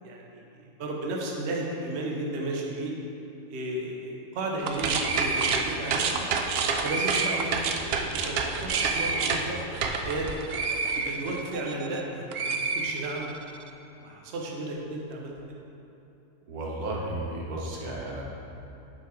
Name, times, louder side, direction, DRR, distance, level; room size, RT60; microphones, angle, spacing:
voice 1, 0.0-2.9 3.5-6.2 6.8-7.6 7.8-10.4 11.0-13.3 14.0-15.6, right 2 dB, 55° right, -1 dB, 1.0 m, -34 dB
sound 1, 4.6-12.0 12.3-13.5, right 4 dB, 70° right, 0.6 m, -28 dB
voice 2, 16.5-18.2, right 1 dB, 85° right, -3 dB, 1.6 m, -33 dB
6.3 x 5.5 x 4.7 m, 2.9 s
omnidirectional pair, 1.5 m